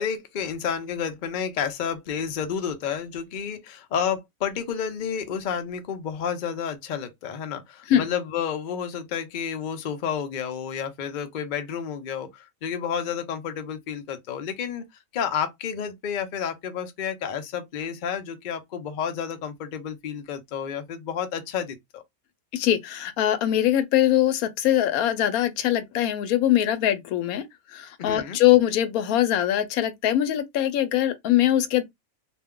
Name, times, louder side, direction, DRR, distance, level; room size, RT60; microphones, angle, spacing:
voice 1, 0.0-14.8 15.1-22.0 28.0-28.4, left 7 dB, 55° left, 0.5 m, -30 dB
voice 2, 22.5-27.4 27.7-31.8, left 12 dB, 85° left, 1.0 m, -22 dB
2.5 x 2.2 x 3.6 m
omnidirectional pair, 1.5 m